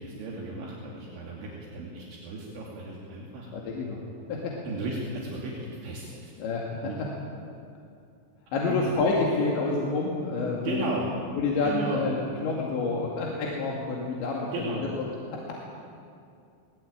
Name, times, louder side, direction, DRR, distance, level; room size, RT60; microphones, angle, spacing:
voice 1, 0.0-3.5 4.6-6.3 6.8-6.9 8.7-8.9 10.6-11.1 11.4-12.0 14.5-14.9, right 2 dB, 70° right, -4 dB, 4.9 m, -35 dB
voice 2, 3.5-4.0 4.3-4.6 6.4-6.7 7.0-7.1 8.5-10.9 11.4-12.1 12.4-14.5 15.3-15.4, left 3 dB, 70° left, -3 dB, 4.6 m, -28 dB
24.0 x 19.0 x 8.8 m, 2.4 s
omnidirectional pair, 5.5 m